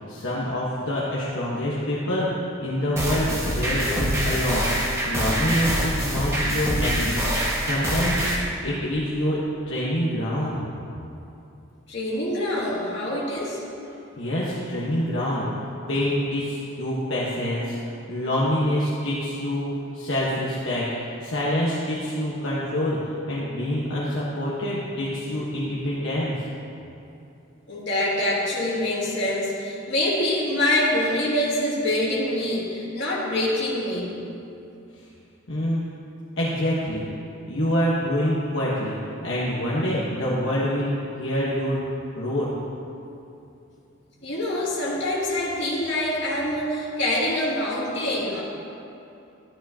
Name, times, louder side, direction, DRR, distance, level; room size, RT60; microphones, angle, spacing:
voice 1, 0.1-2.3 2.6-4.7 5.0-7.2 7.6-8.2 8.6-9.4 9.7-10.6 14.2-15.5 15.9-19.7 19.9-26.3 35.5-35.8 36.4-37.1 37.5-41.8 42.1-42.5, equal, 75° left, -7 dB, 1.2 m, -26 dB
sound 1, 3.0-8.3, equal, 15° right, 1.4 m, -25 dB
voice 2, 11.9-13.6 27.7-34.1 44.2-48.4, left 1 dB, 55° left, -6 dB, 2.3 m, -25 dB
12.5 x 10.5 x 2.8 m, 2.7 s
head